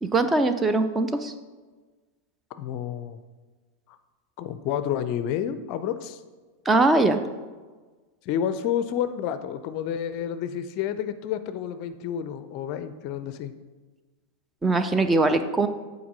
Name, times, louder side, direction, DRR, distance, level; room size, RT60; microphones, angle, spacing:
voice 1, 0.0-1.3 6.7-7.2 14.6-15.7, right 2 dB, 15° right, 9 dB, 0.5 m, -21 dB
voice 2, 2.6-3.2 4.4-6.2 8.3-13.5, left 9 dB, 40° left, 11 dB, 0.4 m, -30 dB
8.5 x 4.1 x 5.2 m, 1.3 s
figure-of-eight pair, 90°, 0 cm